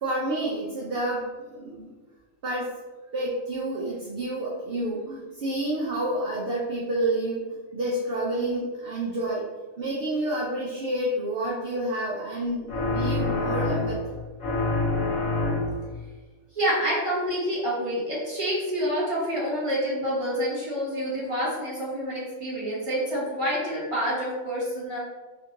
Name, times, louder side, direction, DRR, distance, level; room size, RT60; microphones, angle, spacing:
voice 1, 0.0-1.2 1.5-1.9 2.4-2.7 3.1-7.4 7.7-9.5 9.8-14.2, right 1 dB, 50° right, -5 dB, 0.8 m, -29 dB
sound 1, 12.7-14.1 14.4-15.9, left 2 dB, 70° left, 1.2 m, -26 dB
voice 2, 16.5-25.0, equal, 20° right, -7 dB, 1.5 m, -27 dB
3.7 x 2.7 x 3.7 m, 1.3 s
omnidirectional pair, 1.5 m